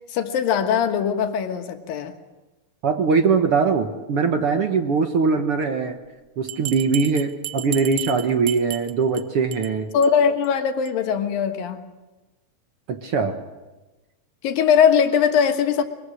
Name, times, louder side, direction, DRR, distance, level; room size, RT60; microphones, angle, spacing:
voice 1, 0.1-2.1 9.9-11.8 14.4-15.8, left 7 dB, 85° left, 6 dB, 3.2 m, -20 dB
voice 2, 2.8-6.0 6.4-9.9 12.9-13.3, right 5 dB, 60° right, 6 dB, 1.6 m, -21 dB
Bell, 6.5-9.2 9.5-9.7 10.0-10.1 10.4-10.5 10.9-11.0, right 15 dB, 75° right, 1.6 m, -32 dB
23.0 x 22.5 x 6.5 m, 1.1 s
omnidirectional pair, 4.0 m